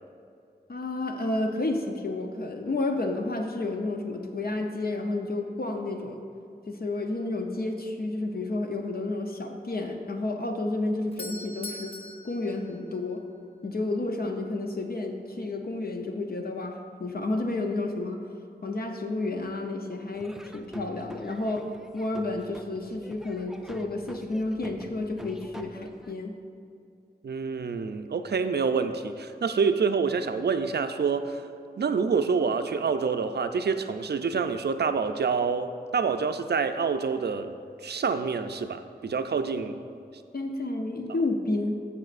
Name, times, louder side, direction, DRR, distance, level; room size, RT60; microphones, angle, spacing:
voice 1, 0.7-6.2 6.7-11.9 12.2-13.2 13.6-18.2 18.6-21.7 21.9-26.3 40.3-41.7, left 2 dB, 65° left, 3 dB, 0.7 m, -31 dB
Doorbell, 10.7-13.6, left 2 dB, 35° left, 0.8 m, -43 dB
Laughter / Drum, 20.1-26.1, right 1 dB, 5° right, 0.4 m, -45 dB
voice 2, 27.2-31.4 31.8-37.5 37.8-39.8, right 5 dB, 80° right, 9 dB, 0.4 m, -27 dB
15.5 x 5.5 x 2.5 m, 2.5 s
wide cardioid pair, 55°, 17 cm